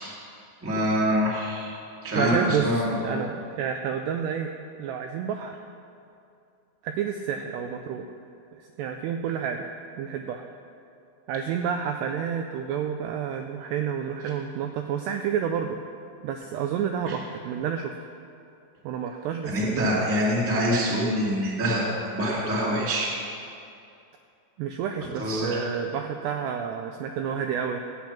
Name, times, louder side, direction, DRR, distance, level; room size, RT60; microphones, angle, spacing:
voice 1, 0.6-1.7 2.0-3.2 17.0-17.1 19.4-21.8 22.1-23.1 25.2-25.5, equal, 10° right, -6 dB, 0.9 m, -25 dB
voice 2, 2.2-4.5 4.8-5.6 6.8-8.1 8.6-9.7 10.0-10.5 11.3-15.8 16.2-18.0 18.8-20.0 24.6-27.8, right 8 dB, 85° right, 5 dB, 2.4 m, -30 dB
15.5 x 8.7 x 5.8 m, 2.6 s
omnidirectional pair, 5.4 m